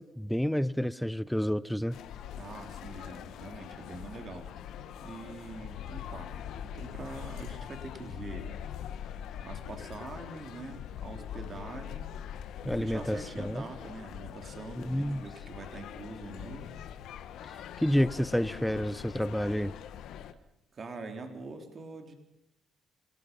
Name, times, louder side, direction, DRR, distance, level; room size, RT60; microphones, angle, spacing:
voice 1, 0.0-2.0 12.6-13.6 14.8-15.2 17.8-19.8, equal, 5° left, 0.7 m, -29 dB
sound 1, 1.9-20.3, left 9 dB, 80° left, 1.4 m, -43 dB
voice 2, 2.3-4.5 5.0-6.3 6.6-8.5 9.4-12.1 12.6-16.7 20.7-22.1, right 3 dB, 45° right, 3.7 m, -44 dB
27.0 x 19.0 x 5.4 m
cardioid pair, 90°, 0 cm